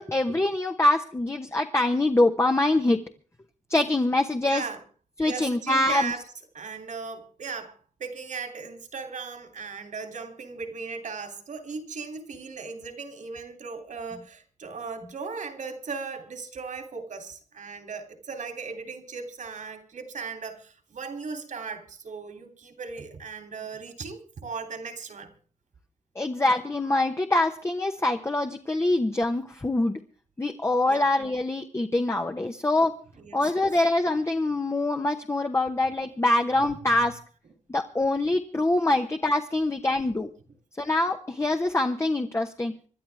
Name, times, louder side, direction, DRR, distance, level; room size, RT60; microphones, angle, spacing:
voice 1, 0.0-3.1 3.7-4.6 5.2-6.1 26.1-30.0 30.4-32.9 33.3-37.2 37.7-40.3 40.8-42.7, left 2 dB, 20° left, 1.1 m, -24 dB
voice 2, 4.4-4.8 5.2-6.2 6.5-25.3 30.8-31.1 33.2-33.7 36.9-37.0, right 5 dB, 75° right, 3.1 m, -37 dB
26.5 x 11.5 x 3.5 m
wide cardioid pair, 115°, 13 cm